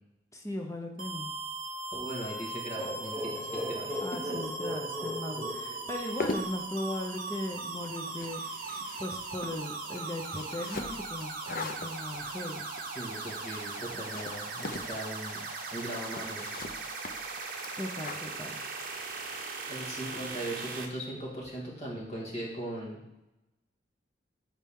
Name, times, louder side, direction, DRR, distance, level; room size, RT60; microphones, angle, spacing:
voice 1, 0.3-1.3 4.0-8.4 9.0-12.7 17.8-18.7, left 1 dB, 15° left, 2 dB, 0.8 m, -38 dB
sound 1, 1.0-20.9, right 3 dB, 50° right, 1.0 m, -39 dB
voice 2, 1.9-4.0 13.0-15.4 15.7-16.5 19.7-23.0, right 1 dB, 35° left, -4 dB, 2.1 m, -39 dB
sound 2, 2.8-6.5, left 1 dB, 5° right, 1.1 m, -38 dB
sound 3, 5.9-19.4, left 3 dB, 55° left, 0.7 m, -42 dB
13.0 x 4.4 x 3.7 m, 0.92 s
head